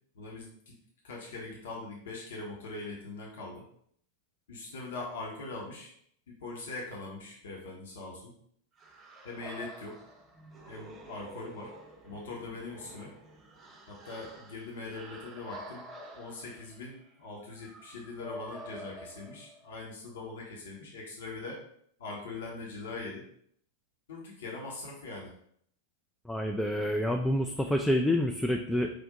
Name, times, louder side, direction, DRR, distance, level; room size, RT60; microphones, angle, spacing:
voice 1, 0.1-0.8 1.0-3.6 4.5-5.9 6.3-8.3 9.2-10.0 10.7-11.7 12.0-13.1 13.9-15.9 16.1-21.6 22.0-23.2 24.1-25.3, left 3 dB, 60° left, -2 dB, 1.0 m, -42 dB
sound 1, 8.8-19.8, equal, 20° right, 0.8 m, -49 dB
voice 2, 26.3-28.9, left 1 dB, 5° left, 2 dB, 0.3 m, -28 dB
5.1 x 2.6 x 3.6 m, 0.67 s
figure-of-eight pair, 90°, 0 cm